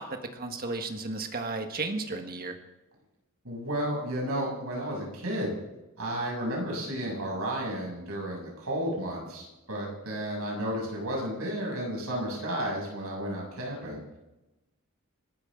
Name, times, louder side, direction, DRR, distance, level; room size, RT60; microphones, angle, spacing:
voice 1, 0.0-2.6, right 3 dB, 45° right, 4 dB, 1.6 m, -34 dB
voice 2, 3.4-5.6 6.0-14.0, equal, 75° right, -2 dB, 7.0 m, -32 dB
30.0 x 12.5 x 3.8 m, 1.0 s
head